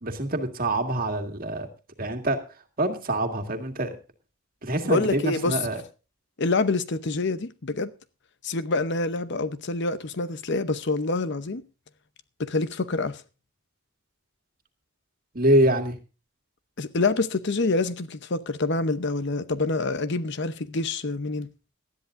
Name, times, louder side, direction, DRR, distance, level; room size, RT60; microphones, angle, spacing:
voice 1, 0.0-1.7 2.0-2.4 2.8-4.0 4.6-5.8 15.3-16.0, right 1 dB, 45° right, 2.0 m, -25 dB
voice 2, 4.9-5.6 6.4-7.9 8.4-11.6 12.4-13.2 16.8-21.5, left 3 dB, 55° left, 0.8 m, -26 dB
19.0 x 13.0 x 2.6 m
head